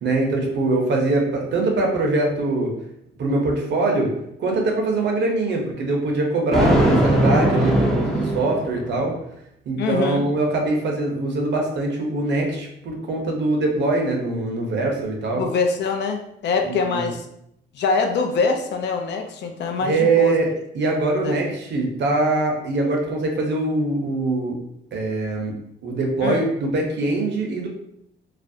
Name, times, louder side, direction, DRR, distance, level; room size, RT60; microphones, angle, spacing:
voice 1, 0.0-2.7 3.2-4.1 4.4-9.1 9.7-15.4 16.6-17.1 19.8-20.5 20.7-24.6 24.9-25.5 25.8-27.7, right 2 dB, 60° right, 1 dB, 0.7 m, -23 dB
Thunder, 6.5-9.0, right 1 dB, ahead, 0.4 m, -19 dB
voice 2, 9.8-10.3 15.4-17.3 17.7-20.4 21.2-21.3 26.2-26.4, left 4 dB, 60° left, 4 dB, 0.4 m, -24 dB
2.4 x 2.0 x 2.5 m, 0.76 s
cardioid pair, 90°, 20 cm